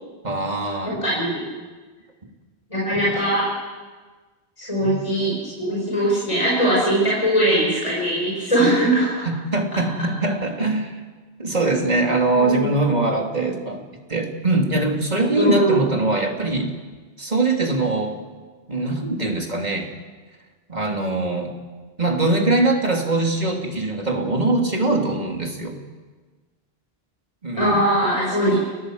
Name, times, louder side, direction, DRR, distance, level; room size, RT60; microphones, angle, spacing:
voice 1, 0.2-1.0 2.9-3.1 4.8-5.0 9.5-10.9 11.4-13.8 14.1-16.7 17.2-18.2 18.7-19.9 20.7-21.5 22.0-25.8 27.4-27.8, right 2 dB, 45° right, 2 dB, 2.9 m, -22 dB
voice 2, 0.8-1.4 2.7-3.5 4.6-9.3 9.7-9.8 12.3-12.8 15.3-15.8 27.5-28.6, right 1 dB, 30° left, -5 dB, 6.3 m, -21 dB
30.0 x 15.5 x 7.9 m, 1.4 s
omnidirectional pair, 1.0 m